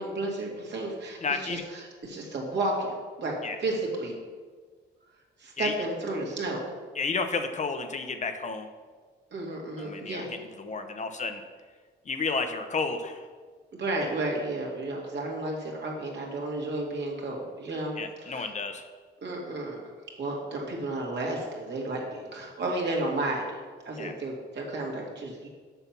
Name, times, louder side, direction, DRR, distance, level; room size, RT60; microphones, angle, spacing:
voice 1, 0.0-4.2 5.4-6.6 9.3-10.3 13.7-17.9 18.2-18.5 19.2-19.8 20.2-25.5, right 2 dB, 60° right, -1 dB, 2.2 m, -32 dB
voice 2, 1.2-1.6 3.4-3.6 5.6-5.7 7.0-8.7 9.8-11.4 12.1-13.2 18.0-18.8 24.0-24.1, left 4 dB, 35° left, 7 dB, 0.8 m, -31 dB
6.9 x 5.8 x 5.9 m, 1.5 s
cardioid pair, 90°, 20 cm